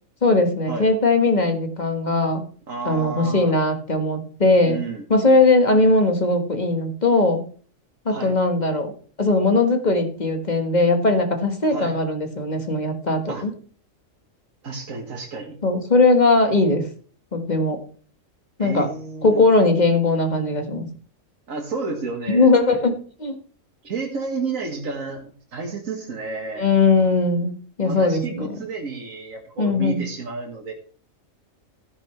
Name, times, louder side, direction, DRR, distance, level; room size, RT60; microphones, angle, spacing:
voice 1, 0.2-2.4 2.8-4.8 5.1-7.4 8.0-8.9 9.2-13.5 15.6-16.9 17.3-17.8 18.6-18.9 19.2-20.9 22.3-23.3 26.6-27.5 27.8-28.5 29.6-30.0, left 2 dB, 35° left, 6 dB, 1.7 m, -19 dB
voice 2, 2.7-3.5 4.7-5.1 8.1-8.3 11.7-11.9 13.3-13.4 14.6-15.6 18.6-19.5 21.5-22.5 23.8-26.7 27.8-30.7, right 4 dB, 75° right, 0 dB, 2.1 m, -31 dB
13.5 x 10.5 x 3.3 m, 0.43 s
omnidirectional pair, 1.4 m